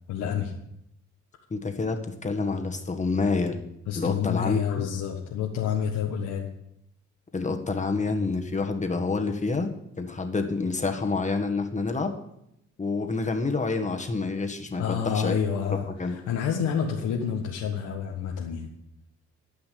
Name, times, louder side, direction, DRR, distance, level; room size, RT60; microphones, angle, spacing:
voice 1, 0.1-0.5 3.9-6.5 14.8-18.7, left 8 dB, 85° left, 0 dB, 1.4 m, -28 dB
voice 2, 1.5-3.7 4.0-4.9 7.3-9.7 10.0-12.1 12.8-15.3 15.7-16.2, left 3 dB, 25° left, 5 dB, 1.8 m, -28 dB
13.5 x 5.7 x 8.6 m, 0.79 s
cardioid pair, 90°, 30 cm